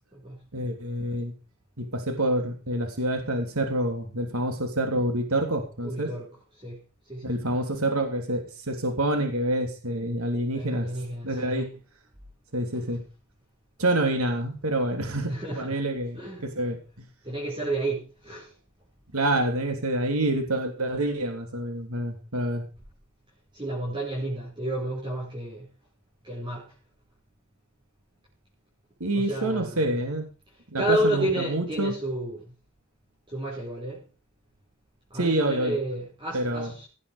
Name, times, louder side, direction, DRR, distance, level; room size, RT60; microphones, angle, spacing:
voice 1, 0.5-1.3 1.8-6.1 7.2-10.9 11.2-11.7 12.5-13.0 13.8-17.0 19.1-22.7 29.0-30.3 30.7-31.9 35.1-35.8 36.3-36.7, right 1 dB, 75° right, 3.1 m, -27 dB
voice 2, 5.8-6.3 6.6-6.8 7.1-7.4 10.5-11.7 15.3-15.8 16.1-16.4 17.2-18.5 23.5-25.7 26.2-26.6 29.1-29.9 30.8-32.4 33.3-34.0 35.1-36.9, right 1 dB, 20° right, 5.4 m, -31 dB
17.5 x 8.5 x 5.1 m
head